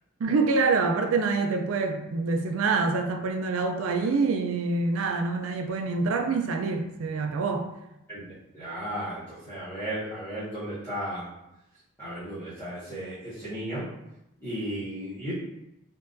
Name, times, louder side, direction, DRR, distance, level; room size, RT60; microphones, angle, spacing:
voice 1, 0.2-7.7, right 4 dB, 80° right, 5 dB, 0.4 m, -26 dB
voice 2, 8.5-11.3 12.0-13.9 14.4-15.3, right 1 dB, 10° left, -15 dB, 0.9 m, -34 dB
3.7 x 2.3 x 2.5 m, 0.88 s
head